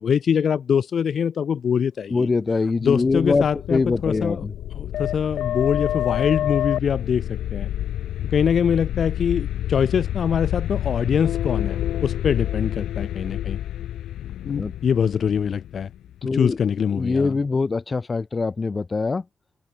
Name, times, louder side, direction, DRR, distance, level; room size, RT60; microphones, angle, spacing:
voice 1, 0.0-2.3 2.8-4.4 4.7-7.7 8.3-13.6 14.5-15.9 16.3-17.3, left 7 dB, 60° left, 0.4 m, -23 dB
voice 2, 2.1-4.5 14.5-14.7 16.2-16.6 16.9-19.2, left 4 dB, 30° left, 1.1 m, -23 dB
sound 1, 2.9-16.6, left 12 dB, 90° left, 0.8 m, -28 dB
cardioid pair, 85°, 0 cm